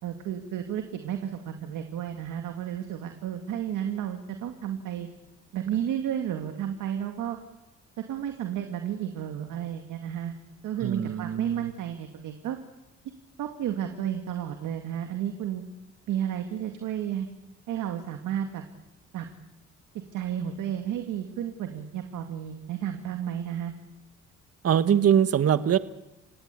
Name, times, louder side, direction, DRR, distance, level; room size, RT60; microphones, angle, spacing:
voice 1, 0.0-5.1 5.5-7.4 8.0-10.4 10.6-12.6 13.4-15.6 16.1-17.3 17.7-18.6 19.1-19.3 20.1-23.7, right 10 dB, 85° right, 5 dB, 2.2 m, -32 dB
voice 2, 10.8-11.7 24.6-25.8, right 9 dB, 50° right, 13 dB, 1.3 m, -23 dB
29.5 x 17.0 x 8.4 m, 0.95 s
cardioid pair, 90°, 30 cm